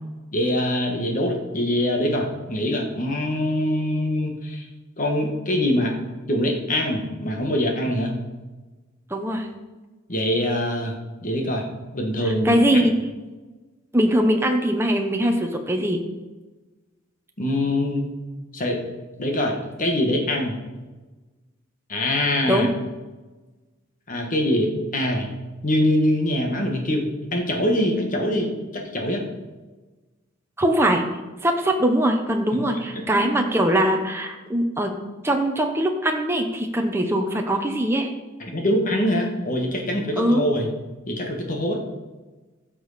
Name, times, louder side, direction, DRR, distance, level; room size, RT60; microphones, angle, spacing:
voice 1, 0.3-4.6 5.0-5.9 6.3-8.2 10.1-11.0 11.2-11.6 11.9-12.6 17.4-18.1 18.5-18.8 19.2-20.6 21.9-22.7 24.1-25.3 25.6-29.2 32.9-33.0 38.4-40.7 41.1-41.8, left 1 dB, 40° left, 1 dB, 1.6 m, -23 dB
voice 2, 9.1-9.5 12.3-12.9 13.9-16.0 22.4-22.7 30.6-31.0 31.4-34.9 35.2-38.1 40.2-40.4, right 1 dB, 10° right, 3 dB, 0.9 m, -21 dB
15.5 x 6.2 x 4.2 m, 1.2 s
head